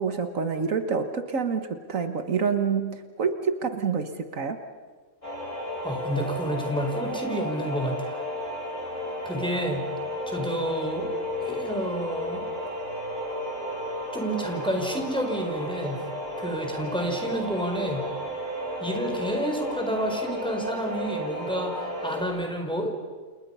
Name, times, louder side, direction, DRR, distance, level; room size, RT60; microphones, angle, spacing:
voice 1, 0.0-4.6, right 5 dB, 80° right, 7 dB, 1.8 m, -27 dB
sound 1, 5.2-22.2, equal, 70° left, 5.8 m, -33 dB
voice 2, 5.8-8.2 9.2-9.9 10.3-11.1 11.4-12.4 14.1-16.0 16.4-18.1 18.8-23.0, right 1 dB, 5° left, 2 dB, 4.4 m, -30 dB
29.0 x 29.0 x 5.6 m, 1.5 s
omnidirectional pair, 1.4 m